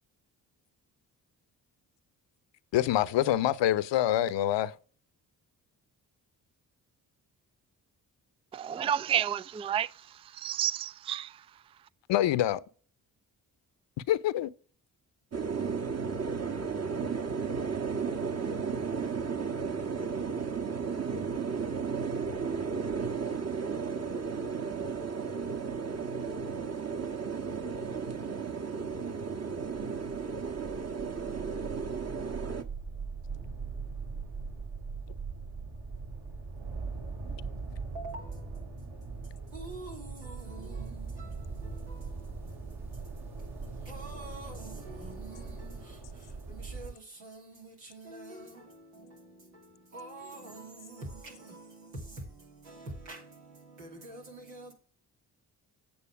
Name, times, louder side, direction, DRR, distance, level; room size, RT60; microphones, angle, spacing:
voice 1, 2.7-4.7 12.1-12.6 14.1-14.5, left 12 dB, 65° left, 0.8 m, -26 dB
voice 2, 8.5-9.9 10.3-11.3, right 10 dB, 15° right, 0.3 m, -30 dB
sound 1, 15.3-32.6, right 5 dB, 30° right, 1.4 m, -34 dB
sound 2, 29.7-46.9, right 4 dB, 50° right, 2.9 m, -41 dB
voice 3, 37.9-43.5 43.8-54.7, right 2 dB, 85° right, 2.7 m, -47 dB
8.7 x 6.7 x 4.7 m
hypercardioid pair, 40°, 47 cm